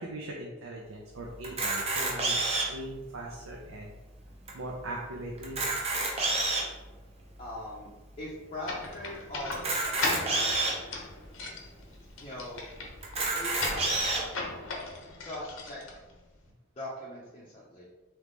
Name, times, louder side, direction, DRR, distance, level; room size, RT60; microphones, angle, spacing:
voice 1, 0.0-3.9 4.5-5.6, right 1 dB, 90° right, -2 dB, 0.6 m, -40 dB
Camera, 1.4-2.8 3.5-3.6 3.8-3.9 4.5-4.6 5.4-6.7 7.4-7.5 9.5-10.7 11.5-11.6 11.8-11.9 13.0-14.2, right 2 dB, 30° right, 0.7 m, -28 dB
voice 2, 7.4-7.9 8.2-10.9 12.2-12.6 13.3-14.6 15.2-15.8 16.8-17.9, left 1 dB, 25° left, -7 dB, 0.6 m, -41 dB
sound 1, 8.6-16.5, left 3 dB, 75° left, 0.8 m, -38 dB
3.8 x 3.1 x 3.5 m, 1.1 s
head